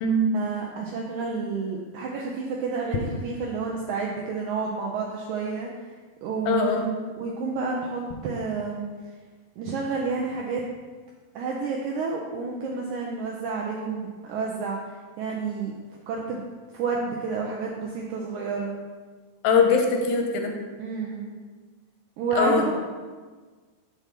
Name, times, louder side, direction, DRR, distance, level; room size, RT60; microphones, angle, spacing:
voice 1, 0.3-5.7 6.2-6.8 7.2-8.9 9.6-10.6 11.4-15.7 16.1-16.4 16.7-18.7 20.8-21.3 22.2-22.7, right 4 dB, 85° right, -1 dB, 1.7 m, -30 dB
voice 2, 6.5-6.9 19.4-20.5 22.4-22.7, left 3 dB, 80° left, 2 dB, 2.4 m, -21 dB
7.1 x 3.5 x 5.7 m, 1.4 s
omnidirectional pair, 4.2 m